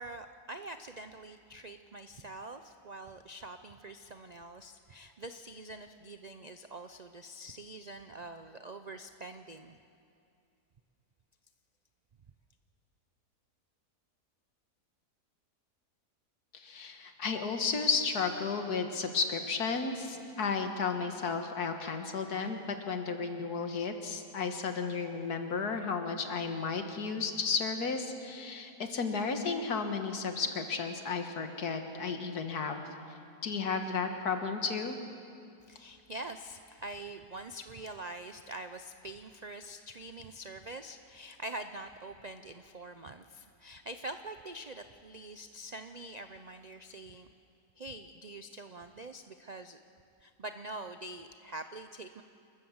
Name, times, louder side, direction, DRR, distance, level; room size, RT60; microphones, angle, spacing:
voice 1, 0.0-9.8 35.6-47.3 47.8-49.8 50.2-52.2, right 2 dB, 70° right, 8 dB, 0.4 m, -45 dB
voice 2, 16.5-32.8 33.4-35.0, left 5 dB, 70° left, 6 dB, 2.0 m, -33 dB
27.5 x 14.0 x 7.2 m, 2.5 s
omnidirectional pair, 1.7 m